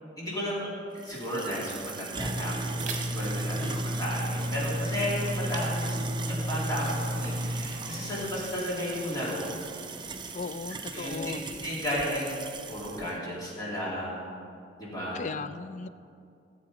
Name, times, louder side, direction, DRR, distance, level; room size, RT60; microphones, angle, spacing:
voice 1, 0.2-0.7 0.9-9.5 10.9-11.3 11.6-12.4 12.7-14.2 14.8-15.2, equal, 20° left, -7 dB, 3.3 m, -33 dB
sound 1, 1.0-13.1, right 1 dB, 25° right, 0.6 m, -34 dB
sound 2, 2.0-11.9, right 4 dB, 45° right, 1.6 m, -46 dB
voice 2, 3.6-4.0 10.3-11.4 15.1-15.9, left 4 dB, 45° left, 13 dB, 0.4 m, -37 dB
15.0 x 7.6 x 5.1 m, 2.4 s
head